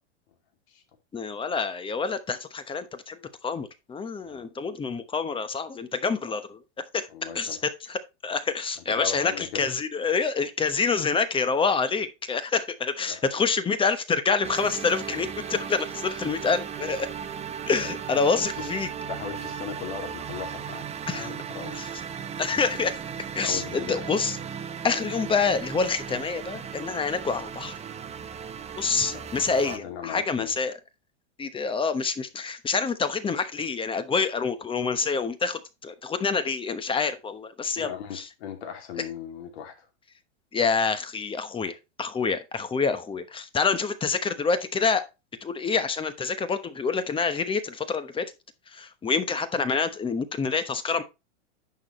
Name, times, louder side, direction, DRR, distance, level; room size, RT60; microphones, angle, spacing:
voice 1, 1.1-6.6 6.9-7.1 7.3-17.1 17.7-18.9 21.1-21.3 21.7-21.9 22.4-23.0 23.3-24.4 24.8-27.8 28.8-30.8 31.4-38.3 40.5-45.0 45.4-48.3 48.7-51.0, left 5 dB, 15° left, 1.0 m, -27 dB
voice 2, 7.1-7.6 9.0-9.7 13.1-13.2 16.1-16.2 18.6-18.7 19.1-20.9 21.1-21.8 23.4-24.1 29.1-29.2 29.6-30.5 37.8-39.9, left 8 dB, 65° left, 2.8 m, -37 dB
sound 1, 14.4-29.8, right 7 dB, 20° right, 0.9 m, -36 dB
10.5 x 6.4 x 3.2 m
hypercardioid pair, 120°, 35 cm